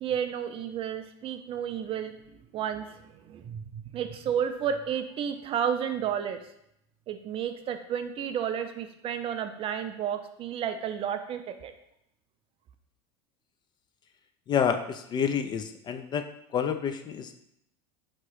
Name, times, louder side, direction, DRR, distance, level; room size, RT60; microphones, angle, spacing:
voice 1, 0.0-2.1 2.5-2.9 3.3-6.4 7.1-11.7, right 8 dB, 40° right, 8 dB, 0.4 m, -31 dB
voice 2, 14.5-16.3 16.5-17.4, left 7 dB, 30° left, 8 dB, 0.3 m, -28 dB
3.6 x 3.0 x 4.6 m, 0.77 s
supercardioid pair, 110°, 15 cm